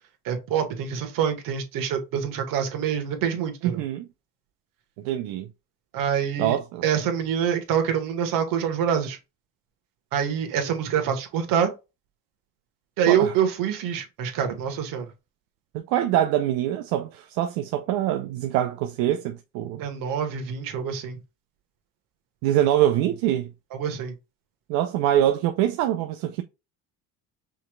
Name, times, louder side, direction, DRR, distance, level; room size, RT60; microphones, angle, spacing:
voice 1, 0.2-3.8 5.9-6.6 6.8-9.2 10.1-11.7 13.0-15.1 19.8-21.2 23.7-24.1, right 8 dB, 70° right, 1.5 m, -25 dB
voice 2, 3.6-4.1 5.0-5.5 6.4-6.9 13.1-13.3 15.7-19.8 22.4-23.5 24.7-26.4, right 12 dB, 85° right, 0.6 m, -24 dB
5.4 x 3.2 x 2.3 m
cardioid pair, 110°, 35 cm